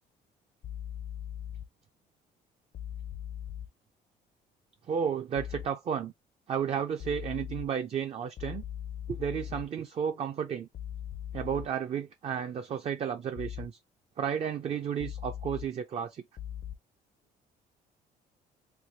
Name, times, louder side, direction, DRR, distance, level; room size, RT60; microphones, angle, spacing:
sound 1, 0.6-1.6 2.7-3.7 5.4-5.7 7.0-7.7 8.4-9.6 10.7-11.7 13.4-13.7 15.0-15.7 16.4-16.7, left 10 dB, 45° left, 0.5 m, -39 dB
voice 1, 4.9-6.1 6.5-8.6 9.1-10.7 11.3-13.8 14.2-16.2, right 8 dB, 40° right, 0.4 m, -32 dB
3.2 x 2.2 x 4.2 m
cardioid pair, 110°, 17 cm